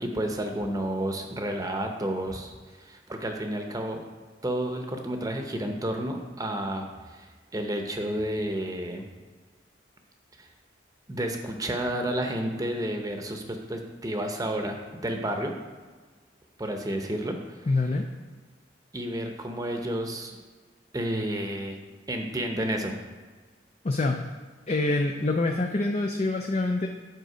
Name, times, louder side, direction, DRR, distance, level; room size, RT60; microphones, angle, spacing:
voice 1, 0.0-2.5 2.8-4.0 4.4-7.3 7.5-9.0 10.4-10.5 11.1-15.5 16.6-17.7 18.9-20.4 20.9-21.8 22.1-23.0, right 1 dB, 20° right, 4 dB, 0.8 m, -31 dB
voice 2, 17.7-18.1 23.8-24.2 24.7-26.9, left 2 dB, 35° left, 3 dB, 0.4 m, -25 dB
8.0 x 5.2 x 5.0 m, 1.4 s
head